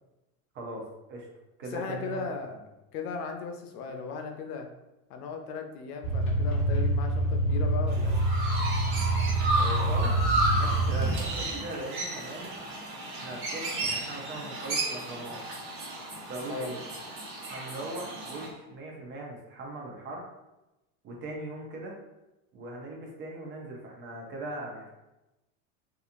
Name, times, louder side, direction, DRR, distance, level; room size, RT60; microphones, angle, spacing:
voice 1, 0.5-1.3 1.6-2.3 9.6-10.1 10.5-12.6 13.1-15.4 16.3-16.8 17.5-20.3 21.0-21.9 22.5-24.9, right 1 dB, 30° right, -1 dB, 0.4 m, -39 dB
voice 2, 1.7-2.5 2.9-4.7 5.1-8.3 16.5-16.7, left 5 dB, 90° left, 4 dB, 0.6 m, -37 dB
sound 1, 6.0-11.6, right 1 dB, 30° left, 0.7 m, -26 dB
Chirp tweet, 7.9-18.5, right 2 dB, 75° right, 1.2 m, -33 dB
2.8 x 2.4 x 2.4 m, 0.98 s
supercardioid pair, 135°, 44 cm